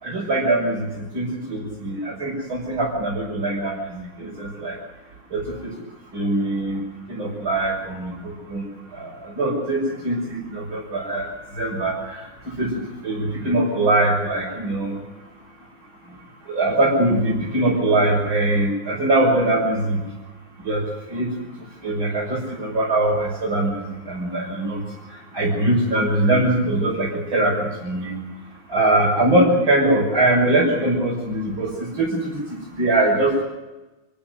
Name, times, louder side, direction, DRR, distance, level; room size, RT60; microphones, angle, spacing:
voice 1, 0.0-4.8 5.3-5.7 6.1-6.8 7.1-8.7 8.9-15.0 16.5-20.0 20.6-21.3 21.8-24.8 25.1-28.1 28.7-33.4, right 1 dB, 80° right, -5 dB, 7.0 m, -22 dB
27.0 x 16.0 x 7.6 m, 1.1 s
omnidirectional pair, 2.2 m